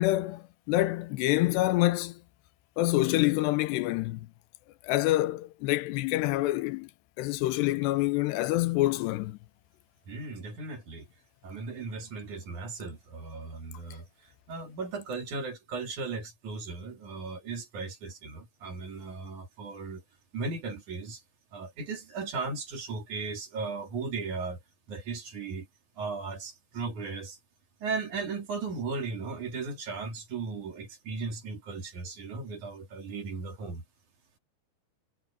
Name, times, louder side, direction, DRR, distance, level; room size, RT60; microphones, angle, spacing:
voice 1, 0.0-2.2 2.8-4.3 4.8-6.9 7.2-9.4, left 17 dB, 85° left, 2.9 m, -26 dB
voice 2, 10.1-11.1 11.4-14.1 14.5-20.0 20.3-21.2 21.5-24.6 24.9-25.7 26.0-27.4 27.8-33.8, right 4 dB, 50° right, 4.2 m, -36 dB
omnidirectional pair, 4.8 m